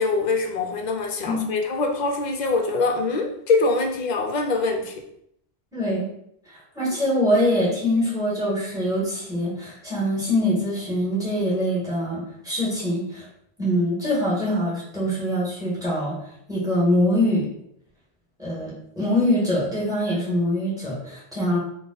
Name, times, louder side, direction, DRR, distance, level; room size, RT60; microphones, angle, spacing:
voice 1, 0.0-5.0, left 3 dB, 55° left, 3 dB, 0.5 m, -24 dB
voice 2, 5.7-6.1 6.5-13.3 13.6-16.2 16.5-17.5 18.4-21.6, left 1 dB, 5° right, -7 dB, 1.4 m, -24 dB
3.5 x 2.3 x 3.8 m, 0.74 s
omnidirectional pair, 1.1 m